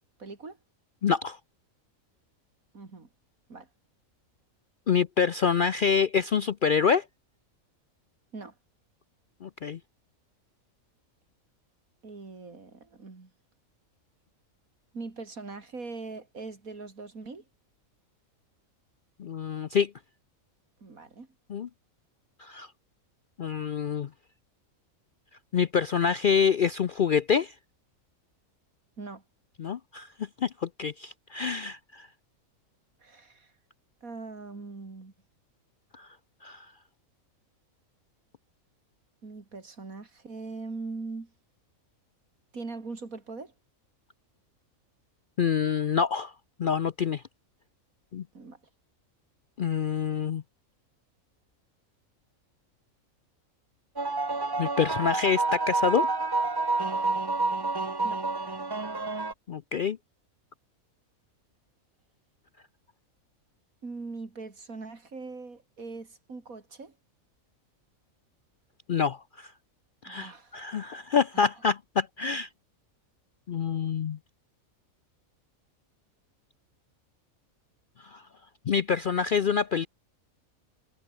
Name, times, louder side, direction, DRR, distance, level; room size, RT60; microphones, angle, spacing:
voice 1, 0.2-0.6 2.7-3.1 3.5-3.7 8.3-8.5 12.0-13.3 14.9-17.4 20.8-21.3 29.0-29.2 33.0-33.5 34.0-35.1 39.2-41.3 42.5-43.5 48.3-48.6 58.0-58.2 63.8-66.9 70.1-70.6 71.3-71.5, right 3 dB, 75° right, 3.7 m, -41 dB
voice 2, 1.0-1.4 4.9-7.0 9.4-9.8 19.2-19.9 21.5-21.7 22.4-22.7 23.4-24.1 25.5-27.5 29.6-32.1 35.9-36.1 36.4-36.7 45.4-46.3 46.6-47.2 48.1-48.2 49.6-50.4 54.6-56.1 59.5-60.0 68.9-69.5 70.0-72.5 73.5-74.2 78.0-78.2 78.7-79.9, left 6 dB, 55° left, 0.6 m, -26 dB
sound 1, 54.0-59.3, right 3 dB, 20° right, 0.9 m, -28 dB
omnidirectional pair, 1.5 m